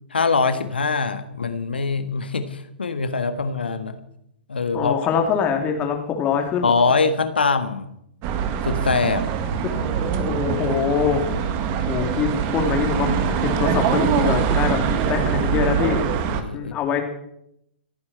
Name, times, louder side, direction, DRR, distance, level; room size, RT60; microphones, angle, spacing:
voice 1, 0.1-4.0 4.5-5.0 6.6-7.9 8.6-9.2 16.3-16.7, left 4 dB, 75° left, 9 dB, 1.7 m, -23 dB
voice 2, 4.7-6.7 10.0-11.4 11.8-14.8 15.1-16.0 16.5-17.0, left 7 dB, 25° left, 3 dB, 3.1 m, -24 dB
sound 1, 8.2-16.4, right 7 dB, 35° right, 1.7 m, -23 dB
27.5 x 9.6 x 4.5 m, 0.78 s
figure-of-eight pair, 110°, 6 cm